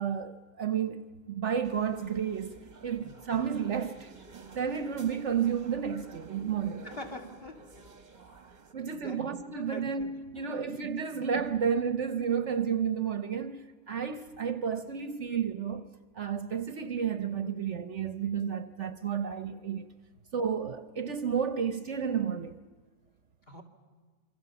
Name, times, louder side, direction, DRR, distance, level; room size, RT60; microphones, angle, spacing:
voice 1, 0.0-4.1 4.5-6.8 8.7-15.9 16.1-19.9 20.3-22.6, right 7 dB, 55° right, 1.1 m, -31 dB
sound 1, 1.6-8.7, right 4 dB, 35° right, 1.2 m, -51 dB
voice 2, 6.8-7.7 8.7-9.3 9.7-10.7 11.1-11.2 20.1-20.2 23.5-23.6, left 1 dB, 40° left, 2.8 m, -46 dB
27.5 x 23.5 x 6.9 m
omnidirectional pair, 1.5 m